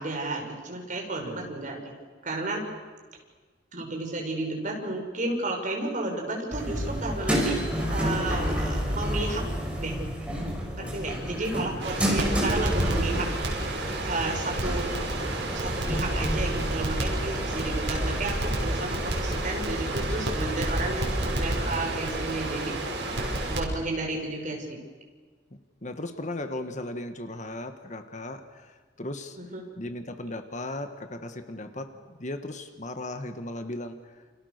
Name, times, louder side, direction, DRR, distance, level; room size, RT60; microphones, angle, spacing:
voice 1, 0.0-1.9 2.2-2.6 3.7-9.4 9.8-10.0 10.8-13.6 14.0-14.9 15.5-22.8 23.5-24.8 29.4-29.6, right 2 dB, 45° right, 1 dB, 5.8 m, -32 dB
voice 2, 1.2-1.6 10.8-12.1 25.8-29.4 29.8-31.9 32.2-34.2, left 1 dB, 40° left, 8 dB, 1.6 m, -37 dB
sound 1, 6.5-21.3, equal, 5° right, 6.0 m, -31 dB
Crackle, 11.8-23.6, right 1 dB, 70° right, 6.8 m, -30 dB
29.0 x 29.0 x 6.7 m, 1.4 s
head